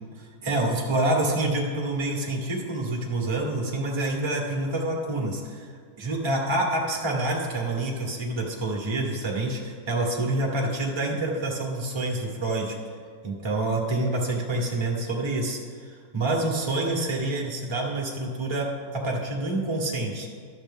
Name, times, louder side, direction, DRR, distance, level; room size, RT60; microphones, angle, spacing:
voice 1, 0.2-12.8 13.2-20.3, right 2 dB, 20° right, -2 dB, 1.3 m, -27 dB
12.0 x 7.2 x 3.6 m, 2.1 s
omnidirectional pair, 1.6 m